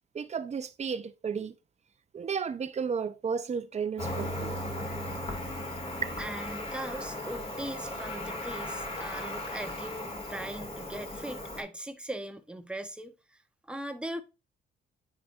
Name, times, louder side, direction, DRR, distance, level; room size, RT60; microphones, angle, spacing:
voice 1, 0.1-1.5 2.1-4.6, right 6 dB, 35° right, 0.7 m, -33 dB
Cricket, 4.0-11.6, left 1 dB, 30° left, 2.4 m, -37 dB
voice 2, 6.2-13.1 13.7-14.2, right 1 dB, 5° right, 0.9 m, -39 dB
8.7 x 5.0 x 2.5 m
cardioid pair, 90°, 20 cm